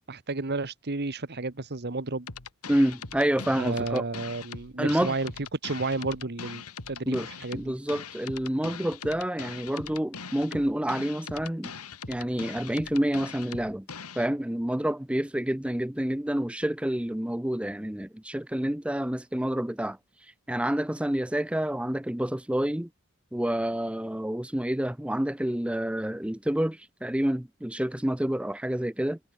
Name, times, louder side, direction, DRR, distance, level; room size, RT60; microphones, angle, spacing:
voice 1, 0.1-2.3 3.6-5.3 5.6-7.7, right 3 dB, 50° right, 1.3 m, -32 dB
sound 1, 2.3-14.3, left 5 dB, 80° left, 2.6 m, -41 dB
voice 2, 2.7-4.0 4.8-5.1 7.1-7.3 7.5-11.7 12.1-13.9 14.2-20.0 20.5-22.9 23.3-29.2, right 1 dB, 5° right, 0.6 m, -28 dB
head